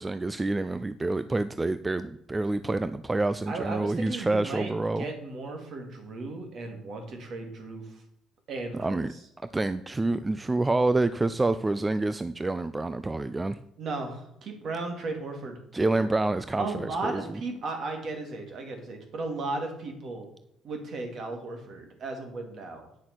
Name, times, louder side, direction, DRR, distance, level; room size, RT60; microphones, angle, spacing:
voice 1, 0.0-5.1 8.7-9.1 9.5-13.6 15.7-17.2, right 2 dB, 15° right, 12 dB, 0.4 m, -27 dB
voice 2, 3.5-8.0 8.5-9.2 13.8-15.6 16.0-16.1 16.6-20.3 20.6-22.9, right 3 dB, 50° right, 4 dB, 2.6 m, -35 dB
9.3 x 6.4 x 6.1 m, 0.78 s
cardioid pair, 135°, 0 cm